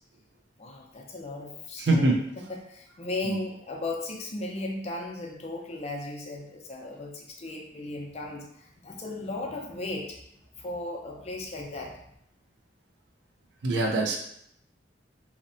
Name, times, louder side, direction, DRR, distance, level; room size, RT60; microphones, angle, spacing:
voice 1, 0.6-10.2 10.6-12.0, left 2 dB, 35° left, 0 dB, 0.5 m, -36 dB
voice 2, 1.8-2.2 3.2-3.4 13.6-14.2, right 2 dB, 85° right, 1 dB, 0.5 m, -23 dB
2.8 x 2.1 x 2.6 m, 0.73 s
head